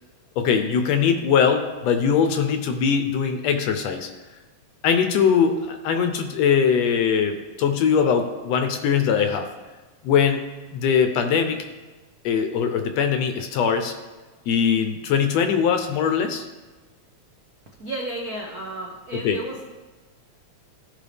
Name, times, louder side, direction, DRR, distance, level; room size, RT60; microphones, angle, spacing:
voice 1, 0.4-4.1 4.8-9.5 10.0-10.4 10.7-11.6 12.3-13.9 14.5-16.4 19.1-19.4, left 7 dB, 75° left, 6 dB, 1.8 m, -21 dB
voice 2, 17.8-19.7, right 2 dB, 65° right, -2 dB, 0.9 m, -33 dB
16.0 x 5.5 x 3.5 m, 1.3 s
omnidirectional pair, 3.3 m